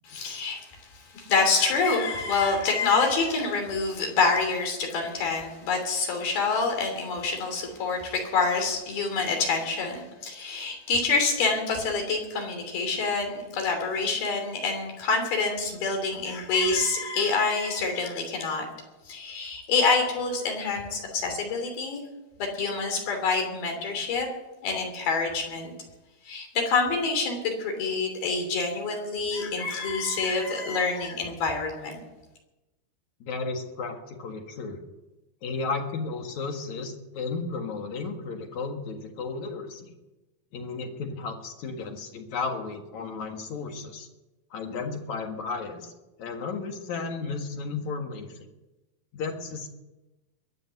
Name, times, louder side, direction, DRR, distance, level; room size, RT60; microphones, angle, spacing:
voice 1, 0.0-18.7 19.1-22.0 22.4-24.3 24.6-25.7 26.3-32.0, left 4 dB, 85° left, 4 dB, 4.9 m, -27 dB
voice 2, 33.2-34.8 35.4-39.9 40.5-44.1 44.5-45.9 46.2-48.3 49.1-49.7, left 4 dB, 60° left, 4 dB, 2.7 m, -34 dB
22.0 x 7.9 x 7.9 m, 1.0 s
omnidirectional pair, 4.2 m